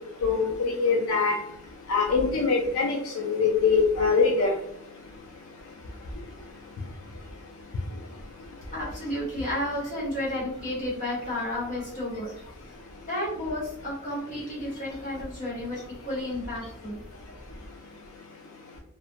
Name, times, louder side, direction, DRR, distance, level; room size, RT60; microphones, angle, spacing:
voice 1, 0.2-1.4 1.9-4.5, left 4 dB, 75° left, 0 dB, 0.4 m, -23 dB
voice 2, 8.7-12.3 13.1-17.0, left 1 dB, 35° left, -6 dB, 1.1 m, -32 dB
2.4 x 2.1 x 2.7 m, 0.79 s
head